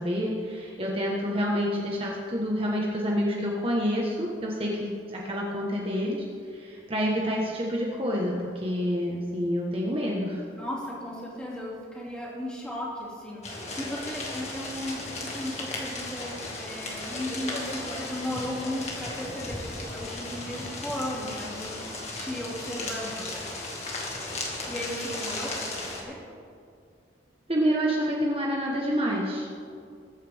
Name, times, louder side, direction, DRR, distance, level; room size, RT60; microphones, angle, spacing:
voice 1, 0.0-6.2 6.5-10.4 27.5-29.5, equal, 30° right, -3 dB, 1.3 m, -28 dB
voice 2, 10.6-23.5 24.7-26.2, left 1 dB, 5° left, -5 dB, 2.6 m, -36 dB
sound 1, 13.4-26.0, left 2 dB, 35° left, 2.1 m, -35 dB
21.0 x 9.1 x 3.6 m, 2.3 s
head